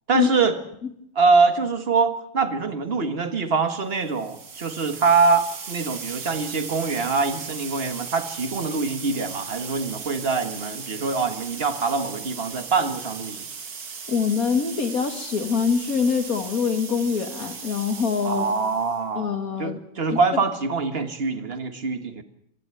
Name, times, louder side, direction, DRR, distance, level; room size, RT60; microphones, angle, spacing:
voice 1, 0.1-0.6 1.1-13.4 18.2-19.3 19.6-22.2, right 4 dB, 30° right, 10 dB, 1.7 m, -24 dB
sound 1, 4.0-19.0, right 5 dB, 50° right, 2.1 m, -37 dB
voice 2, 14.1-18.5 19.2-19.8 20.1-20.2, left 6 dB, 45° left, 8 dB, 2.4 m, -24 dB
27.5 x 12.0 x 9.1 m, 0.77 s
omnidirectional pair, 2.1 m